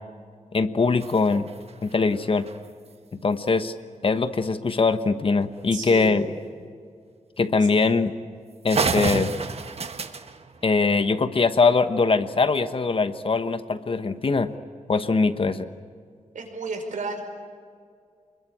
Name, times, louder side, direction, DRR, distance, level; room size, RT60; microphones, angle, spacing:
voice 1, 0.5-1.5 1.8-2.5 3.2-3.7 4.0-6.3 7.4-8.1 8.6-9.3 10.6-14.5 14.9-15.7, left 4 dB, 45° left, 10 dB, 1.1 m, -22 dB
sound 1, 1.0-2.9 4.4-4.5 4.9-5.0 5.4-5.6 6.5-6.6 7.4-7.5 7.9-8.0 8.4-8.5 8.7-11.4, right 5 dB, 50° right, 1.3 m, -31 dB
voice 2, 5.7-6.3 7.6-7.7 16.3-17.2, right 3 dB, 85° right, 3 dB, 5.0 m, -32 dB
28.5 x 22.0 x 8.6 m, 2.2 s
wide cardioid pair, 135°, 13 cm